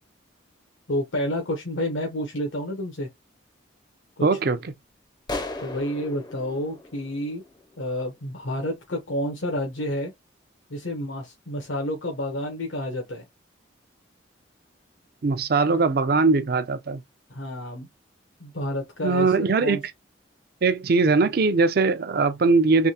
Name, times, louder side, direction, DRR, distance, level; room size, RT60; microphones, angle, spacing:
voice 1, 0.9-3.1 4.2-4.4 5.6-7.4 7.8-10.1 10.7-13.2 17.3-17.9 18.4-19.8, left 1 dB, 85° left, 1.0 m, -29 dB
voice 2, 4.2-4.7 15.2-17.0 19.0-19.8 20.6-22.9, right 4 dB, 50° right, 0.5 m, -21 dB
sound 1, 5.3-7.9, left 2 dB, 20° left, 0.5 m, -36 dB
3.4 x 3.2 x 2.8 m
head